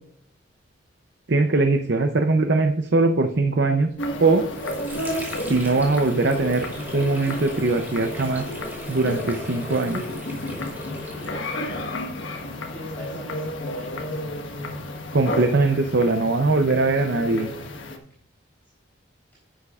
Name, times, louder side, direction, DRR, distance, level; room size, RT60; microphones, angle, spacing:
voice 1, 1.3-3.9 4.2-4.4 5.5-6.7 6.9-8.4 8.9-10.0 15.1-17.5, right 3 dB, 55° right, 5 dB, 0.7 m, -21 dB
sound 1, 4.0-18.0, left 1 dB, 70° left, 1.4 m, -32 dB
Water / Sink (filling or washing), 4.4-11.8, equal, 10° right, 2.7 m, -38 dB
voice 2, 12.3-14.1 15.4-15.7, right 1 dB, 10° left, -6 dB, 3.6 m, -44 dB
11.0 x 10.0 x 2.4 m, 0.67 s
head